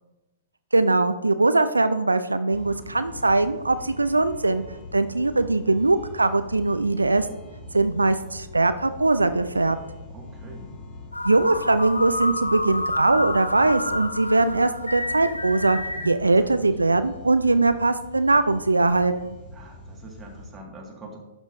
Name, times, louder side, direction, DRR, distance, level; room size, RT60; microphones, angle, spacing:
voice 1, 0.7-4.6 4.9-7.3 7.7-9.8 11.2-15.8 16.0-19.4, right 2 dB, 85° right, 11 dB, 0.4 m, -21 dB
sound 1, 2.5-20.5, left 2 dB, 25° left, 1.9 m, -43 dB
voice 2, 10.1-10.8 16.0-16.7 19.5-21.2, right 2 dB, 15° right, -1 dB, 1.8 m, -44 dB
sound 2, 11.1-16.1, left 1 dB, 90° left, 0.8 m, -29 dB
11.5 x 6.1 x 2.6 m, 1.1 s
figure-of-eight pair, 115°, 0 cm